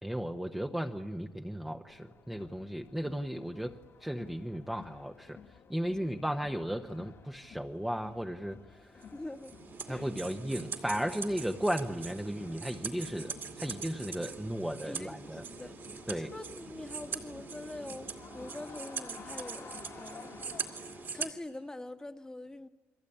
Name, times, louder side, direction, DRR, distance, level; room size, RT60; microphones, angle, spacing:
voice 1, 0.0-5.4 5.7-8.9 9.9-15.4 16.1-16.3, equal, 5° right, 1.0 m, -35 dB
Crowd, 1.9-21.3, left 7 dB, 55° left, 1.9 m, -53 dB
sound 1, 9.0-21.3, right 5 dB, 45° right, 2.4 m, -42 dB
voice 2, 9.1-9.5 9.9-10.1 14.8-20.3 21.1-22.7, left 2 dB, 15° left, 1.4 m, -44 dB
29.5 x 23.0 x 8.7 m
cardioid pair, 115°, 5 cm